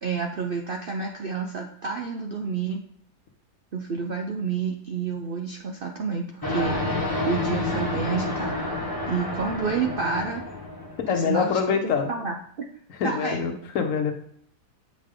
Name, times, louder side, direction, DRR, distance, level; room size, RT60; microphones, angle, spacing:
voice 1, 0.0-2.8 3.7-6.8 7.3-8.7 9.1-10.4 11.1-12.4 13.0-13.4, right 5 dB, 65° right, 2 dB, 0.5 m, -29 dB
sound 1, 6.4-11.2, left 2 dB, 15° left, 1.2 m, -29 dB
voice 2, 11.1-12.1 13.0-14.1, left 6 dB, 60° left, 5 dB, 1.2 m, -25 dB
8.2 x 5.1 x 3.7 m, 0.66 s
omnidirectional pair, 1.7 m